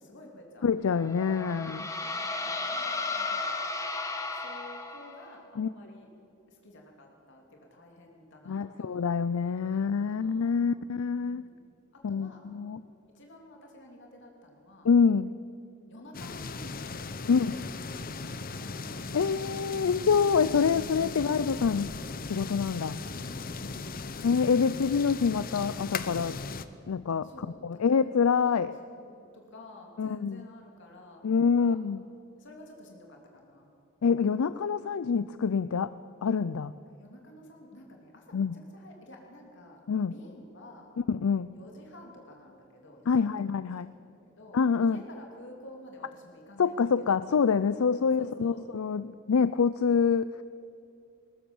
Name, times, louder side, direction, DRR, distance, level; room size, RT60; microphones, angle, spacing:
voice 1, 0.0-0.7 2.0-3.5 4.3-6.1 6.5-9.0 9.7-10.6 11.2-11.6 11.9-12.4 13.1-14.9 15.9-19.3 23.2-24.0 27.2-31.8 32.4-33.7 36.9-38.5 38.7-39.8 40.1-40.9 41.5-43.4 44.0-47.1 48.0-48.6, left 1 dB, 60° left, 1 dB, 2.9 m, -51 dB
voice 2, 0.6-1.9 5.6-5.7 8.5-11.4 12.0-12.8 14.8-15.3 17.3-17.5 19.1-21.9 22.2-23.0 24.2-26.4 26.9-27.3 27.6-28.7 30.0-30.5 31.2-32.0 34.0-35.9 36.2-36.7 38.3-38.6 39.9-40.1 41.1-41.5 43.1-43.9 44.5-45.0 46.6-50.3, left 6 dB, 85° left, 14 dB, 0.5 m, -26 dB
sound 1, 0.9-5.3, left 3 dB, 15° left, 1.5 m, -34 dB
sound 2, 16.1-26.7, left 4 dB, 45° left, 0.8 m, -38 dB
20.0 x 20.0 x 7.1 m, 2.7 s
head